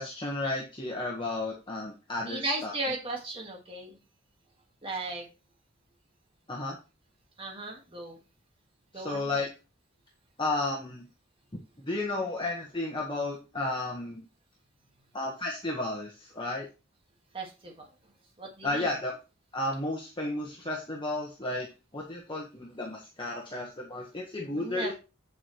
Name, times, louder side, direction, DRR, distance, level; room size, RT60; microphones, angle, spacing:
voice 1, 0.0-2.7 6.5-6.8 8.9-9.5 10.4-11.0 11.8-14.2 15.1-16.6 18.6-19.2 19.5-21.7 21.9-24.9, left 2 dB, 25° left, -2 dB, 1.4 m, -33 dB
voice 2, 2.2-4.0 4.8-5.3 7.4-8.2 8.9-9.4 17.3-17.9 18.4-18.9 24.5-24.9, right 2 dB, 25° right, 0 dB, 1.8 m, -36 dB
8.5 x 7.3 x 3.2 m, 0.30 s
head